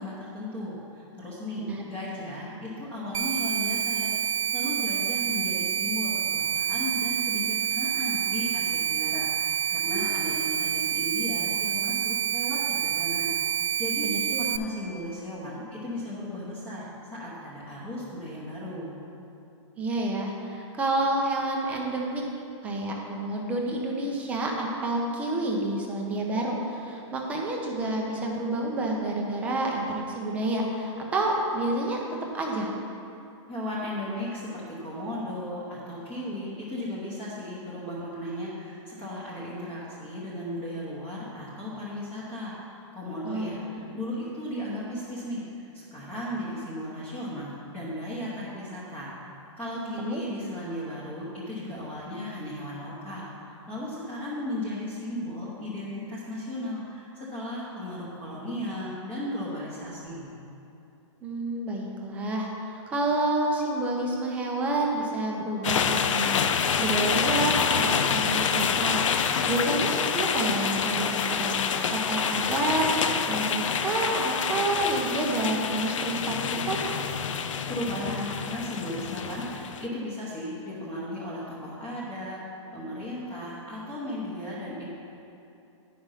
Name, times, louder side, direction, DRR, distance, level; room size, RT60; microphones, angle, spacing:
voice 1, 0.0-13.4 13.8-14.1 14.4-16.9 17.2-19.0 33.5-49.1 49.6-60.3 77.7-82.4 82.7-84.9, left 1 dB, 10° left, -9 dB, 0.9 m, -35 dB
sound 1, 3.1-14.6, right 10 dB, 90° right, 0.5 m, -28 dB
voice 2, 14.0-14.4 19.8-22.2 22.6-32.0 32.3-32.7 43.2-43.6 49.8-50.2 61.2-71.6 71.9-72.9 73.3-76.8, right 2 dB, 10° right, 0 dB, 0.6 m, -29 dB
sound 2, 65.6-79.9, left 7 dB, 85° left, 0.6 m, -27 dB
10.5 x 5.1 x 5.7 m, 2.7 s
hypercardioid pair, 170°, 16 cm